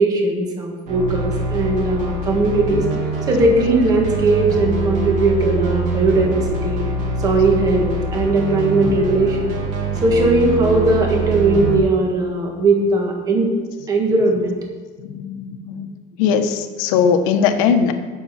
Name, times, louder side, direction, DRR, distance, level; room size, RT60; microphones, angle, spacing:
voice 1, 0.0-2.8 3.3-6.8 7.2-9.5 10.0-13.5 13.9-14.6, right 2 dB, 20° right, 1 dB, 1.6 m, -18 dB
sound 1, 0.9-11.8, right 3 dB, 45° right, 2.4 m, -24 dB
voice 2, 15.0-15.9 16.2-17.9, left 7 dB, 85° left, 7 dB, 1.2 m, -19 dB
17.5 x 7.0 x 4.3 m, 1.4 s
cardioid pair, 180°, 18 cm